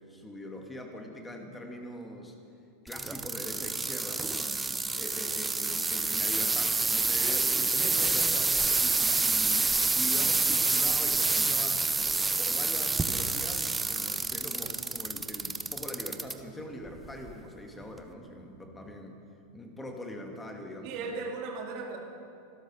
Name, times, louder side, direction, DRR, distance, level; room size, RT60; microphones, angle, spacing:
voice 1, 0.1-2.3 2.8-4.6 5.0-9.7 10.0-11.9 12.4-19.2 19.5-21.1, left 1 dB, 10° left, 3 dB, 2.1 m, -42 dB
sound 1, 2.9-16.3 16.9-17.3 18.0-18.1, right 3 dB, 10° right, 0.8 m, -28 dB
voice 2, 7.8-8.1 20.8-22.0, right 4 dB, 45° right, 0 dB, 2.8 m, -37 dB
25.5 x 12.5 x 4.1 m, 2.5 s
figure-of-eight pair, 90°, 0 cm